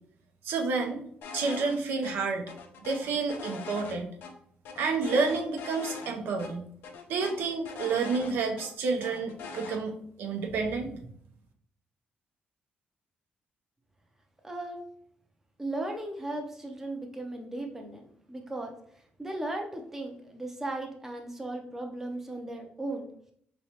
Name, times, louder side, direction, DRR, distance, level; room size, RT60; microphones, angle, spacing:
voice 1, 0.4-1.0 1.3-2.5 2.8-4.1 4.8-6.7 7.1-9.9 10.2-11.1, right 4 dB, 85° right, 3 dB, 0.7 m, -29 dB
sound 1, 1.2-1.8 2.0-2.1 2.5-4.3 4.6-6.1 6.4-6.5 6.8-8.7 9.0-9.8, left 4 dB, 90° left, 0.6 m, -42 dB
voice 2, 14.4-14.8 15.6-18.0 18.3-18.7 19.2-23.1, right 2 dB, 10° right, 2 dB, 0.5 m, -36 dB
4.4 x 3.1 x 2.8 m, 0.63 s
cardioid pair, 160°, 3 cm